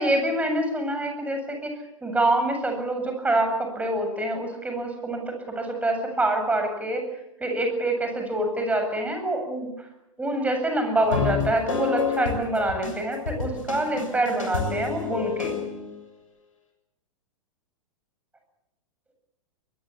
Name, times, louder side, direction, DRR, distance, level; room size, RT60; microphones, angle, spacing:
voice 1, 0.0-1.7 2.0-7.0 7.4-9.7 10.2-15.5, right 1 dB, 10° right, 5 dB, 7.9 m, -26 dB
sound 1, 11.0-15.9, left 6 dB, 70° left, 7.3 m, -29 dB
23.5 x 21.5 x 8.8 m, 0.89 s
figure-of-eight pair, 100°, 17 cm